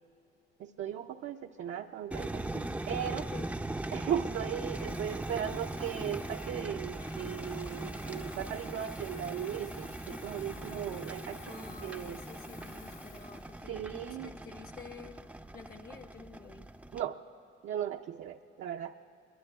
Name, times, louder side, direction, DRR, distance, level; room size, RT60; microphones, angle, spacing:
voice 1, 0.6-3.3 3.9-12.2 13.7-14.3 16.9-17.2 17.6-18.9, right 9 dB, 70° right, 4 dB, 0.5 m, -37 dB
sound 1, 2.1-17.0, right 1 dB, 5° right, 0.4 m, -40 dB
Water tap faucet / Fill (with liquid), 4.2-14.5, left 5 dB, 75° left, 1.6 m, -53 dB
voice 2, 11.4-15.2 15.5-16.6, left 5 dB, 50° left, 6 dB, 1.2 m, -50 dB
24.5 x 22.0 x 2.3 m, 2.6 s
cardioid pair, 90°, 20 cm